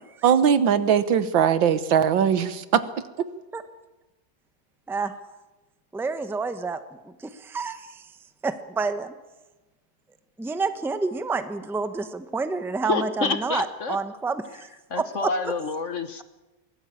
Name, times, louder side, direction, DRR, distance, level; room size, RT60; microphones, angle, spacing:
voice 1, 0.2-2.8, right 8 dB, 85° right, 13 dB, 1.9 m, -20 dB
voice 2, 5.9-6.8 7.0-8.0 8.4-9.1 10.4-14.4 14.9-15.5, right 4 dB, ahead, 10 dB, 0.7 m, -29 dB
voice 3, 12.8-14.0 14.5-14.6 14.9-16.2, left 4 dB, 45° left, 10 dB, 1.2 m, -28 dB
22.5 x 18.0 x 8.7 m, 1.1 s
omnidirectional pair, 2.0 m